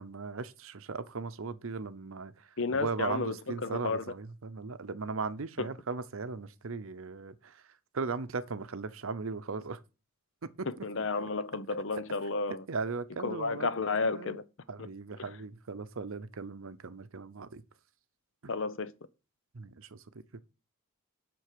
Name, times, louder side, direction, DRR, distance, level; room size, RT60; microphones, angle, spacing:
voice 1, 0.0-2.3 2.7-7.5 7.9-9.8 10.6-10.7 12.7-13.7 14.1-14.4 14.7-17.6 18.4-18.5 19.5-20.0 20.3-20.4, right 4 dB, 70° right, 0.7 m, -37 dB
voice 2, 2.6-4.1 5.6-5.7 10.7-12.6 13.2-14.4 14.8-14.9 15.2-15.4 18.5-18.9, left 4 dB, 60° left, 0.7 m, -32 dB
7.7 x 6.1 x 6.7 m
head